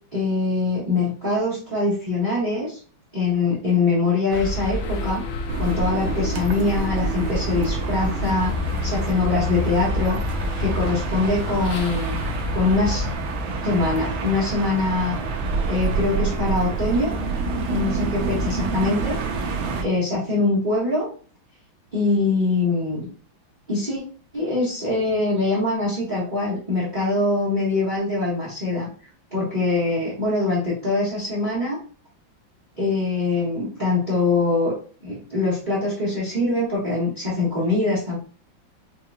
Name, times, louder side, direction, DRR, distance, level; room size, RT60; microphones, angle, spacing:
voice 1, 0.1-2.8 3.1-5.2 5.6-8.5 8.8-10.2 10.6-12.2 12.5-13.0 13.6-15.2 15.6-17.1 17.7-19.5 19.8-21.1 21.9-23.1 23.7-24.0 24.3-28.9 29.3-31.8 32.8-34.7 35.0-38.2, left 3 dB, 25° right, -7 dB, 1.2 m, -23 dB
sound 1, 4.3-13.2, left 2 dB, 80° left, 1.3 m, -29 dB
sound 2, 5.5-19.8, right 3 dB, 80° right, 1.4 m, -27 dB
4.7 x 2.9 x 2.2 m, 0.41 s
omnidirectional pair, 2.1 m